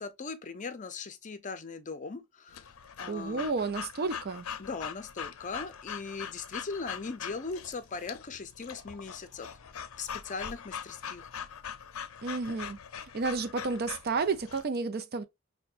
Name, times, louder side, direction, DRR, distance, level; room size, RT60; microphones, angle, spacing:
voice 1, 0.0-2.7 3.0-3.5 4.6-9.5 10.0-11.3, left 4 dB, 35° left, 0.5 m, -39 dB
Breathing / Dog, 2.5-14.6, left 8 dB, 85° left, 0.5 m, -42 dB
voice 2, 3.1-4.5 12.2-15.2, right 4 dB, 50° right, 0.5 m, -32 dB
5.6 x 2.2 x 2.4 m
head